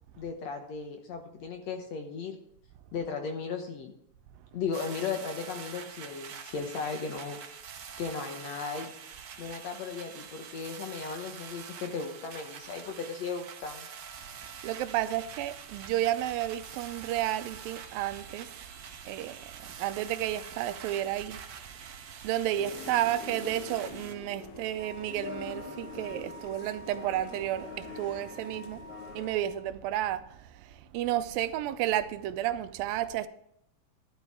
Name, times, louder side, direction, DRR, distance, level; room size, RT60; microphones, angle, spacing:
voice 1, 0.2-2.4 2.9-3.9 4.5-7.4 8.0-8.9 9.4-13.9, left 5 dB, 65° left, 1.9 m, -36 dB
sound 1, 4.7-24.1, right 7 dB, 70° right, 1.3 m, -45 dB
voice 2, 14.4-18.7 19.1-21.4 22.2-28.8 29.1-33.3, right 13 dB, 90° right, 2.4 m, -32 dB
sound 2, 22.6-29.3, left 6 dB, 85° left, 1.2 m, -44 dB
Wind instrument woodwind instrument, 24.8-29.6, right 3 dB, 45° left, 2.2 m, -49 dB
12.0 x 11.5 x 3.6 m
omnidirectional pair, 4.1 m